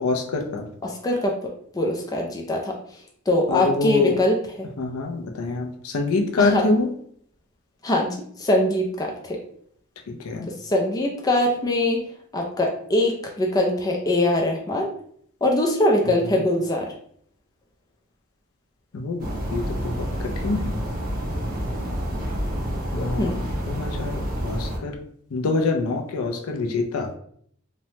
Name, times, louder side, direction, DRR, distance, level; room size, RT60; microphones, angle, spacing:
voice 1, 0.0-0.7 3.5-4.2 4.8-6.9 10.1-10.5 16.2-16.5 18.9-20.8 22.9-23.4 23.7-25.0 25.3-27.1, left 3 dB, 85° left, 4 dB, 0.5 m, -25 dB
voice 2, 0.8-2.8 3.3-4.7 6.4-6.7 7.8-9.4 10.5-12.0 12.3-14.9 15.4-16.9 23.0-23.4, left 1 dB, 15° left, 0 dB, 0.3 m, -23 dB
sound 1, 19.2-24.8, equal, 40° right, 0.9 m, -28 dB
3.1 x 2.1 x 2.8 m, 0.62 s
head